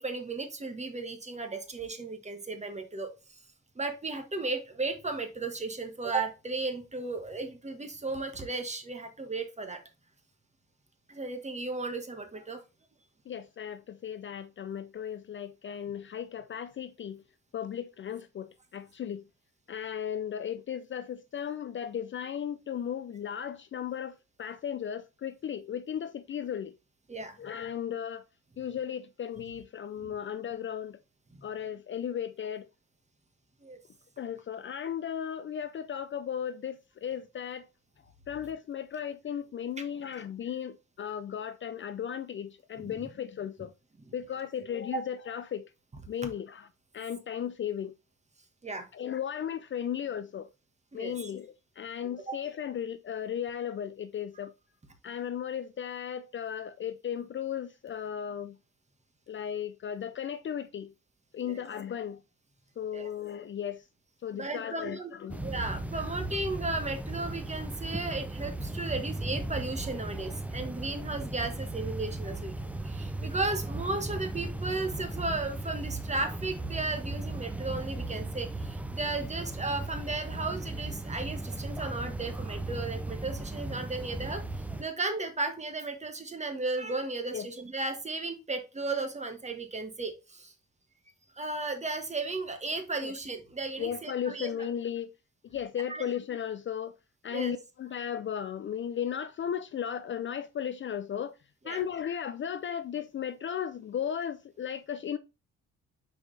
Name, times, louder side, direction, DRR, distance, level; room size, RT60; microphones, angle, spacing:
voice 1, 0.0-3.1 3.7-9.8 11.1-12.6 27.1-27.4 30.0-30.1 31.3-31.4 33.6-33.8 42.8-43.1 44.0-44.1 44.9-45.0 48.6-48.9 50.9-51.3 52.3-52.4 61.4-61.6 62.9-63.1 64.3-65.1 65.4-90.5 91.4-94.7 95.9-96.1 97.3-97.5 101.6-101.8, right 3 dB, 20° right, 1.5 m, -35 dB
voice 2, 13.3-17.2 17.5-19.2 19.7-26.7 27.4-28.2 28.6-31.0 31.4-32.7 34.2-37.6 38.3-43.7 44.1-45.7 46.1-46.7 46.9-48.0 48.9-50.5 50.9-54.5 55.0-58.6 59.3-60.9 61.3-62.2 62.8-63.8 64.2-65.4 87.3-87.5 93.0-93.1 93.8-95.1 95.5-96.9 97.2-101.3 101.6-105.2, left 9 dB, 40° left, 0.5 m, -35 dB
sound 1, 65.3-84.8, right 2 dB, 5° right, 0.6 m, -36 dB
6.1 x 4.8 x 3.3 m
cardioid pair, 90°, 30 cm